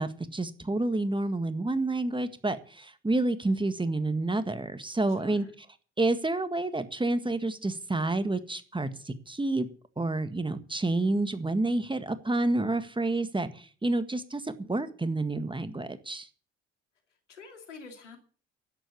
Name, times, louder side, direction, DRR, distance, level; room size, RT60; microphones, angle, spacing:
voice 1, 0.0-5.4 6.0-9.7 10.0-16.3, right 2 dB, 15° right, 11 dB, 1.7 m, -29 dB
voice 2, 5.2-5.5 17.3-18.2, left 4 dB, 85° left, 5 dB, 2.7 m, -47 dB
12.0 x 9.7 x 8.4 m, 0.42 s
figure-of-eight pair, 50°, 35 cm